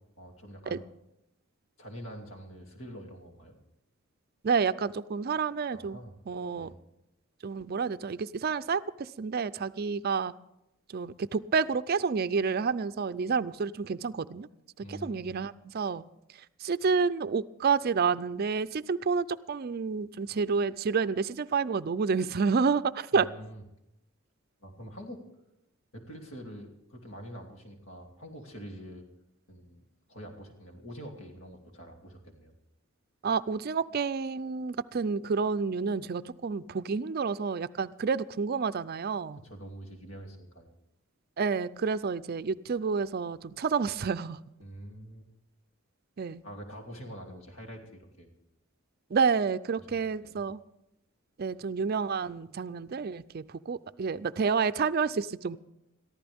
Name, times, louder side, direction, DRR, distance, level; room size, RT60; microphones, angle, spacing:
voice 1, 0.2-0.8 1.8-3.6 5.7-6.2 6.6-6.8 14.8-15.3 23.1-23.6 24.6-25.2 25.9-29.1 29.5-32.5 39.4-40.7 44.6-45.3 46.4-48.3 49.8-50.4, equal, 75° left, 2 dB, 2.9 m, -45 dB
voice 2, 4.4-6.0 6.3-6.7 7.4-10.3 10.9-14.5 14.9-16.0 16.6-23.3 33.2-39.4 41.4-44.4 46.2-46.4 49.1-50.6 51.4-55.6, right 5 dB, 50° right, 14 dB, 0.4 m, -29 dB
22.0 x 14.5 x 3.5 m, 0.87 s
head